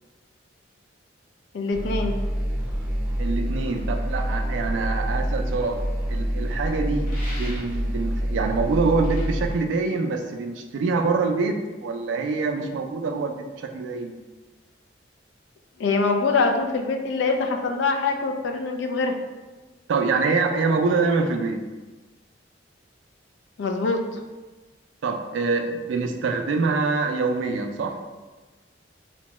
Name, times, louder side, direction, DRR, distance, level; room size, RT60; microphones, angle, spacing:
voice 1, 1.5-2.1 15.8-19.1 23.6-24.2, left 3 dB, 70° left, 4 dB, 0.3 m, -24 dB
sound 1, 1.7-9.5, equal, 5° right, 0.5 m, -27 dB
voice 2, 3.2-5.8 6.1-14.1 19.9-21.6 25.0-28.0, right 4 dB, 80° right, 5 dB, 0.3 m, -25 dB
sound 2, 7.0-7.9 9.0-9.3, left 1 dB, 45° left, 0.8 m, -40 dB
2.7 x 2.1 x 3.0 m, 1.2 s
head